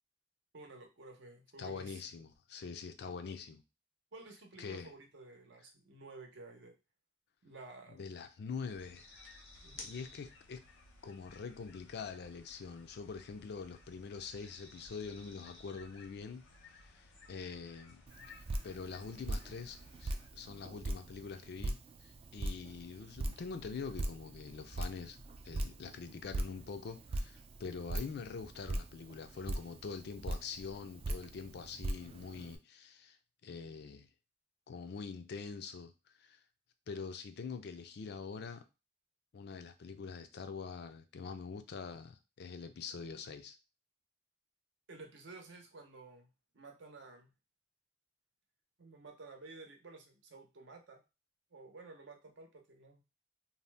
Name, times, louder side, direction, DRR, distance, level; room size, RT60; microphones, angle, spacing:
voice 1, 0.5-2.0 4.1-6.7 7.4-8.0 9.6-9.9 44.9-46.3 46.5-47.3 48.8-51.0 51.5-53.0, right 3 dB, 70° right, 0.7 m, -53 dB
voice 2, 1.6-3.6 4.6-4.9 7.9-9.2 9.8-10.6 11.0-18.0 18.6-25.2 25.4-33.2 33.4-34.1 34.7-35.9 36.2-36.4 36.9-38.6 39.3-43.6, left 5 dB, 60° left, 0.4 m, -44 dB
sound 1, 8.7-20.3, left 3 dB, 85° left, 0.8 m, -57 dB
Drip, 18.1-32.6, right 1 dB, 30° right, 0.3 m, -41 dB
2.7 x 2.1 x 3.2 m
head